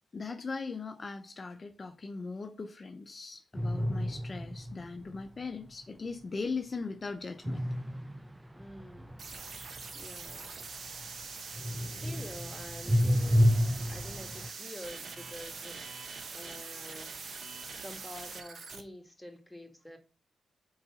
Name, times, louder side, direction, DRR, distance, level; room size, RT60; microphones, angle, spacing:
voice 1, 0.1-7.6, left 4 dB, 40° left, 0.6 m, -39 dB
sound 1, 3.5-5.2 7.4-11.2 11.5-14.5, equal, 10° right, 0.5 m, -30 dB
voice 2, 8.5-9.2 9.9-10.7 12.0-16.0 16.3-17.1 17.7-20.0, left 1 dB, 5° left, 1.6 m, -48 dB
sound 2, 9.2-18.8, right 4 dB, 60° right, 1.0 m, -43 dB
4.7 x 3.9 x 5.7 m
cardioid pair, 65°, 0 cm